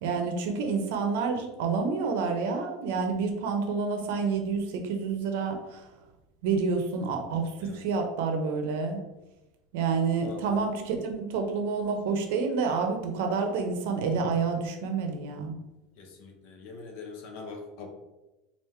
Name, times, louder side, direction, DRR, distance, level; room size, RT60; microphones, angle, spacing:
voice 1, 0.0-5.9 6.4-9.0 9.7-15.6, right 5 dB, 70° right, 4 dB, 0.6 m, -28 dB
voice 2, 7.6-7.9 10.2-10.6 16.0-17.9, left 4 dB, 55° left, 3 dB, 0.8 m, -43 dB
4.3 x 2.5 x 3.5 m, 1.0 s
cardioid pair, 175°, 0 cm